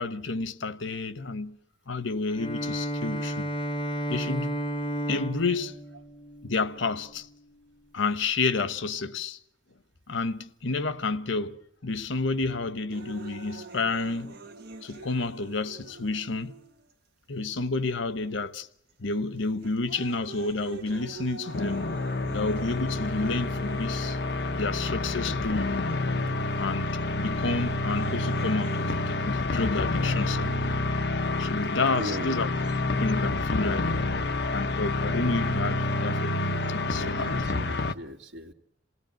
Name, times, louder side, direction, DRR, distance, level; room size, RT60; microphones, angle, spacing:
voice 1, 0.0-1.6 1.9-3.5 4.1-4.6 5.1-5.8 6.4-7.3 7.9-9.4 10.1-14.4 14.8-16.6 17.3-18.7 19.0-21.8 22.3-24.2 24.5-25.7 26.5-30.7 31.4-32.5 32.9-33.9 34.5-37.3, left 3 dB, 90° left, 1.2 m, -30 dB
Bowed string instrument, 2.3-7.2, right 1 dB, 25° left, 2.2 m, -32 dB
sound 1, 12.9-16.9 17.7-17.8 18.6-18.9 19.4-24.9 25.9-26.0 27.4-28.9, right 4 dB, 55° right, 2.0 m, -46 dB
sound 2, 21.5-37.9, left 2 dB, 60° left, 0.9 m, -28 dB
voice 2, 31.9-32.4 36.8-38.5, equal, 70° right, 2.2 m, -38 dB
28.0 x 17.5 x 7.7 m
head